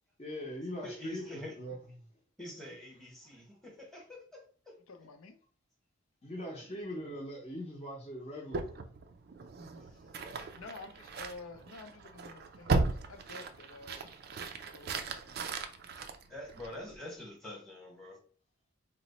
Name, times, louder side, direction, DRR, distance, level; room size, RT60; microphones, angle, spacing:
voice 1, 0.2-1.2 1.6-1.7 6.2-8.7, equal, 30° left, 0.7 m, -41 dB
voice 2, 0.8-1.5 2.4-4.7 6.5-6.8 9.8-10.2 16.3-18.2, left 1 dB, ahead, 0.9 m, -46 dB
voice 3, 4.9-5.4 10.5-12.8 13.1-15.5 16.6-16.8, left 3 dB, 85° left, 0.6 m, -50 dB
sound 1, 8.5-17.0, right 3 dB, 50° right, 0.3 m, -37 dB
2.9 x 2.1 x 4.0 m
head